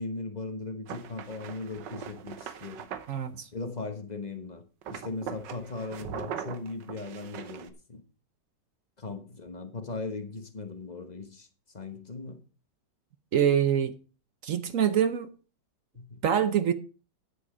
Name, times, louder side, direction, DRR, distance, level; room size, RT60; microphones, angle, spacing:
voice 1, 0.0-2.9 3.5-4.6 4.9-8.0 9.0-11.5 11.7-12.4 15.9-16.2, left 3 dB, 30° left, 1.1 m, -38 dB
sound 1, 0.9-3.1 4.8-7.7, right 8 dB, 85° right, 1.6 m, -40 dB
voice 2, 3.1-3.5 13.3-13.9 14.4-15.3 16.2-16.7, right 9 dB, 60° right, 1.0 m, -25 dB
9.9 x 8.6 x 4.9 m
omnidirectional pair, 1.9 m